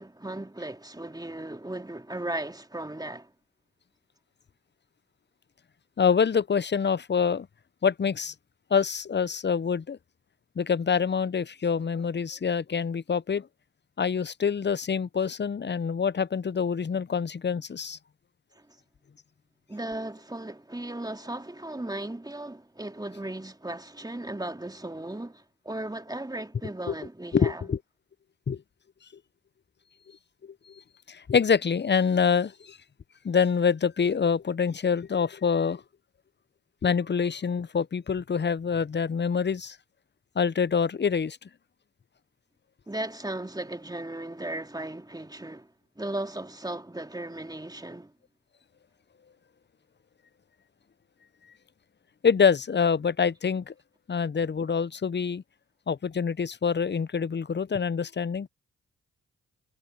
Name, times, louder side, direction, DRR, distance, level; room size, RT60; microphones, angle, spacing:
voice 1, 0.0-3.3 18.5-18.7 19.7-27.7 42.9-48.1, right 1 dB, 10° right, 2.7 m, -36 dB
voice 2, 6.0-7.5 7.8-8.3 8.7-10.0 10.6-13.5 14.0-18.0 26.9-27.0 27.3-27.8 28.5-28.6 30.4-30.8 31.1-32.8 33.2-35.8 36.8-39.8 40.4-41.4 52.2-53.7 54.1-55.4 55.9-58.5, left 6 dB, 30° left, 0.7 m, -26 dB
supercardioid pair, 45°, 33 cm